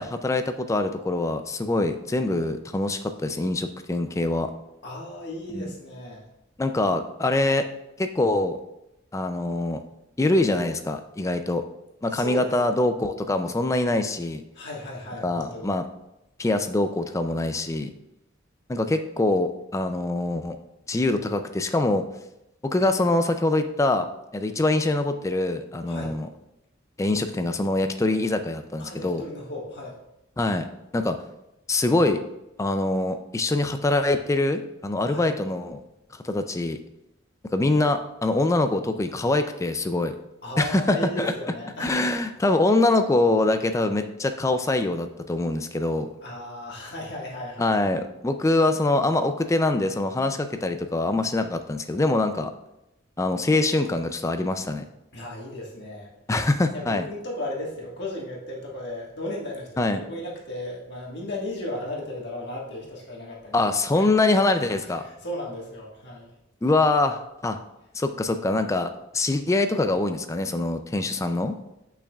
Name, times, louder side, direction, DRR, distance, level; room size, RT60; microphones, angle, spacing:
voice 1, 0.0-4.5 5.5-5.7 6.6-7.7 8.0-8.6 9.1-9.8 10.2-11.6 12.0-14.4 15.2-15.8 16.4-17.9 18.7-20.6 20.9-22.1 22.6-24.1 24.3-26.3 27.0-29.2 30.4-30.7 30.9-31.2 31.7-32.2 32.6-35.8 36.1-36.8 37.5-40.1 40.6-41.3 41.8-46.1 47.6-52.5 53.2-54.8 56.3-57.0 59.8-60.0 63.5-65.0 66.6-67.6 67.9-71.6, left 2 dB, 15° left, 8 dB, 0.3 m, -24 dB
voice 2, 4.8-6.3 12.1-12.5 14.5-15.7 25.9-26.2 28.8-30.0 35.1-35.3 40.4-42.0 46.2-47.8 55.1-56.1 56.7-63.6 63.9-64.1 65.0-66.3, left 1 dB, 60° left, -3 dB, 1.6 m, -35 dB
8.6 x 5.7 x 2.4 m, 0.87 s
head